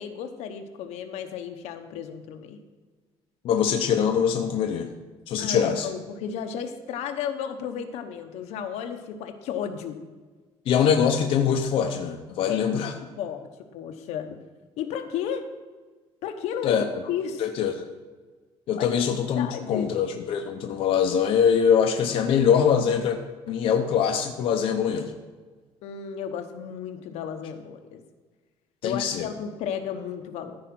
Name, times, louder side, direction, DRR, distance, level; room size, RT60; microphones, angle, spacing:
voice 1, 0.0-2.6 5.4-10.0 12.5-13.4 13.7-14.4 14.8-15.4 16.2-17.5 18.8-19.0 19.3-19.9 25.8-28.0 28.8-30.6, left 8 dB, 75° left, 6 dB, 1.0 m, -33 dB
voice 2, 3.4-4.9 5.3-5.9 10.7-12.9 16.6-16.8 17.4-17.9 18.7-23.2 23.5-25.1 28.8-29.3, left 7 dB, 55° left, 4 dB, 0.7 m, -23 dB
14.0 x 4.9 x 6.0 m, 1.4 s
cardioid pair, 175°, 11 cm